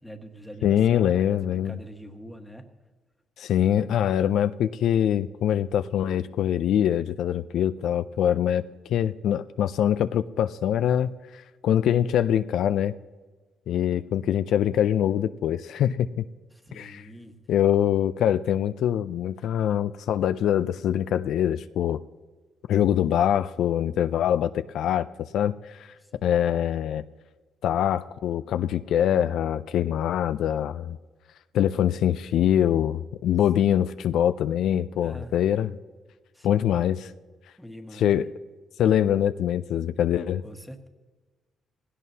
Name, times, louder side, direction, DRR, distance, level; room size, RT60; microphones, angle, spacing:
voice 1, 0.0-2.7 16.5-17.5 26.0-26.4 35.0-35.3 36.3-36.7 37.6-38.3 40.4-40.9, equal, 5° left, 4 dB, 1.4 m, -44 dB
voice 2, 0.6-1.8 3.4-8.6 8.9-12.9 13.7-16.3 16.8-17.0 17.5-22.0 22.7-25.1 25.3-25.9 26.2-27.0 27.6-31.0 31.5-35.7 36.4-37.1 38.0-38.3 38.8-40.4, left 10 dB, 75° left, 11 dB, 0.4 m, -24 dB
18.0 x 16.5 x 2.8 m, 1.3 s
cardioid pair, 90°, 0 cm